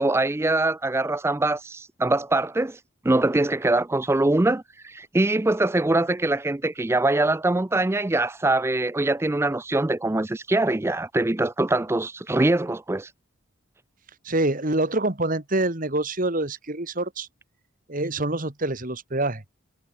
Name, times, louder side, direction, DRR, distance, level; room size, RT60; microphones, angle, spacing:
voice 1, 0.0-13.1, right 2 dB, 10° right, 0.4 m, -23 dB
voice 2, 14.2-17.3 17.9-19.4, right 2 dB, 40° right, 2.0 m, -26 dB
head